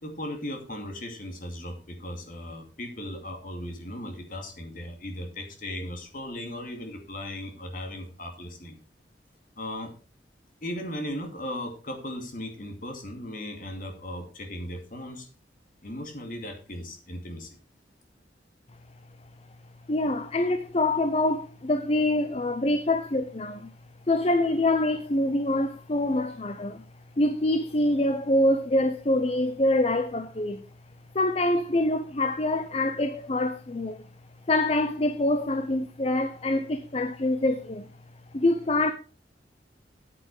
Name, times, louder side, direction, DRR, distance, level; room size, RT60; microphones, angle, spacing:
voice 1, 0.0-8.8 9.6-9.9 10.6-15.3 15.8-17.6, left 1 dB, 50° left, 2.4 m, -37 dB
voice 2, 19.9-23.7 24.1-26.8 27.2-30.6 31.1-34.0 34.5-37.8 38.3-38.9, left 1 dB, 35° left, 0.6 m, -25 dB
8.8 x 8.7 x 4.7 m
head